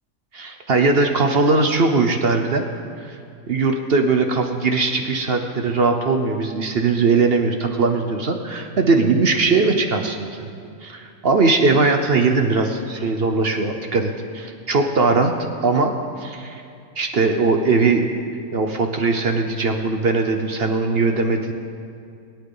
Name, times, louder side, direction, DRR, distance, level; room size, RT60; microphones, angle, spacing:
voice 1, 0.3-2.7 3.0-3.2 3.5-10.3 10.8-15.3 15.6-16.6 17.0-18.1 18.5-21.5, right 3 dB, 50° right, 5 dB, 0.8 m, -20 dB
21.0 x 9.2 x 3.9 m, 2.4 s
omnidirectional pair, 1.6 m